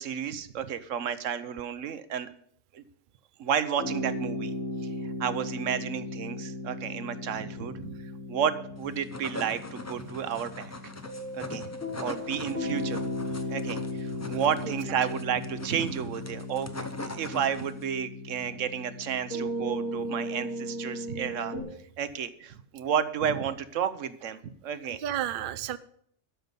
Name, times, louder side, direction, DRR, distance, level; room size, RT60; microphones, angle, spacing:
voice 1, 0.0-2.3 2.7-2.8 3.4-4.5 5.2-7.9 8.3-10.7 11.3-13.0 13.5-21.6 22.0-25.0, right 8 dB, 80° right, 13 dB, 1.2 m, -32 dB
sound 1, 3.8-21.6, left 1 dB, 80° left, 3.9 m, -36 dB
sound 2, 8.8-17.9, left 2 dB, 15° left, 0.6 m, -42 dB
voice 2, 14.3-15.2 24.9-25.8, right 11 dB, 55° right, 14 dB, 0.6 m, -34 dB
12.5 x 5.4 x 8.1 m, 0.65 s
omnidirectional pair, 1.3 m